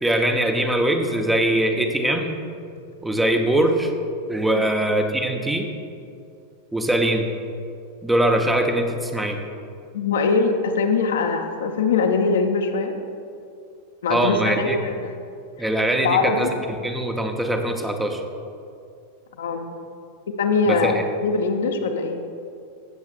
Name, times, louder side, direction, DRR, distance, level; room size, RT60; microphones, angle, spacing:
voice 1, 0.0-2.4 3.0-3.9 4.3-5.7 6.7-7.3 8.0-9.4 14.1-14.8 15.6-18.2 20.7-21.0, right 1 dB, 5° right, 4 dB, 0.7 m, -22 dB
voice 2, 9.9-12.9 14.0-14.9 16.0-16.5 19.4-19.7 20.4-21.0 21.2-22.2, left 4 dB, 65° left, 4 dB, 0.8 m, -22 dB
16.0 x 7.4 x 2.4 m, 2.5 s
figure-of-eight pair, 90°, 0 cm